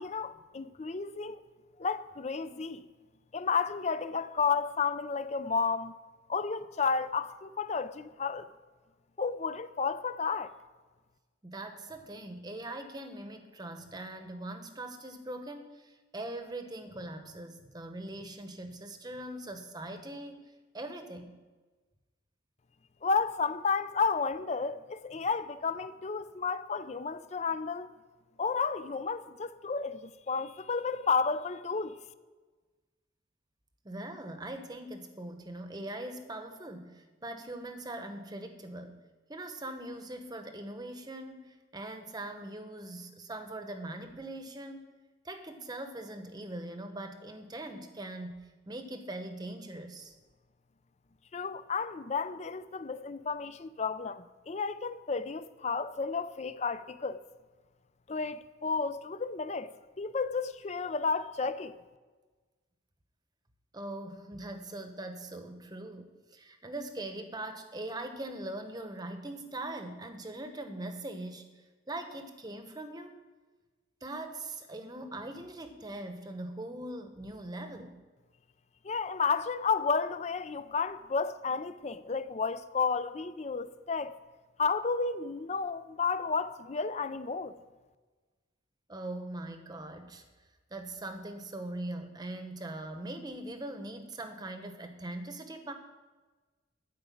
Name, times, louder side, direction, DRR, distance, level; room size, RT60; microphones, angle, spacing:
voice 1, 0.0-1.4 1.8-2.8 3.3-5.9 6.3-8.5 9.2-10.5 23.0-27.9 28.4-32.0 51.3-57.2 58.1-61.7 78.8-84.2 84.6-87.5, left 5 dB, 35° left, 0.4 m, -32 dB
voice 2, 11.4-20.4 20.7-21.4 33.8-39.0 39.3-44.8 45.2-50.1 63.7-71.5 71.9-73.1 74.0-78.0 88.9-90.2 90.7-95.7, right 1 dB, 20° right, 0.9 m, -41 dB
12.0 x 5.1 x 8.5 m
head